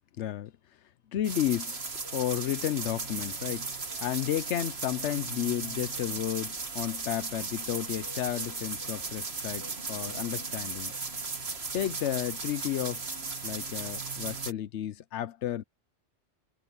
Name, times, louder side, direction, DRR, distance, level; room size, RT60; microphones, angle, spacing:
voice 1, 0.2-0.5 1.1-3.7 4.0-10.9 11.7-13.0 13.4-15.6, left 12 dB, 85° left, 1.0 m, -32 dB
sound 1, 1.2-14.5, right 4 dB, 65° right, 2.1 m, -36 dB
omnidirectional pair, 1.2 m